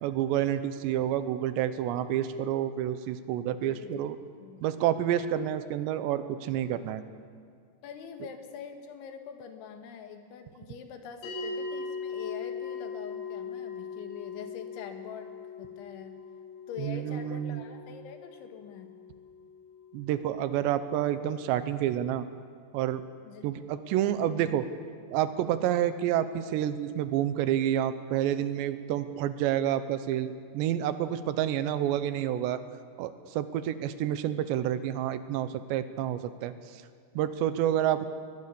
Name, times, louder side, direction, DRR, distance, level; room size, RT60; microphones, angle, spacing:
voice 1, 0.0-4.2 4.6-7.0 16.8-17.6 19.9-22.3 22.7-23.0 23.4-24.7 25.1-32.6 33.0-36.8 37.2-38.1, right 11 dB, 80° right, 12 dB, 3.0 m, -29 dB
voice 2, 3.6-4.6 7.8-15.3 15.6-16.1 16.7-18.9 23.2-23.5, left 7 dB, 90° left, 6 dB, 4.0 m, -44 dB
sound 1, 11.2-21.8, left 5 dB, 45° left, 9.1 m, -41 dB
21.5 x 20.5 x 6.9 m, 2.2 s
omnidirectional pair, 5.2 m